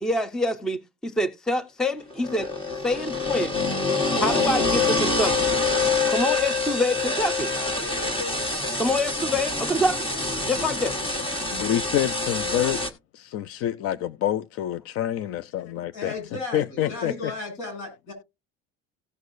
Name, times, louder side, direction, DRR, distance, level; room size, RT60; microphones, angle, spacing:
voice 1, 0.0-2.5 2.8-3.5 4.2-5.5 6.1-7.5 8.8-10.1 10.4-11.0, left 1 dB, ahead, 0.5 m, -26 dB
sound 1, 2.1-12.9, left 3 dB, 15° left, 1.3 m, -26 dB
voice 2, 11.5-12.8 13.1-16.1 16.5-17.3, left 12 dB, 50° left, 0.5 m, -27 dB
voice 3, 15.9-18.1, left 3 dB, 75° left, 6.5 m, -35 dB
16.5 x 6.4 x 2.5 m
cardioid pair, 155°, 30 cm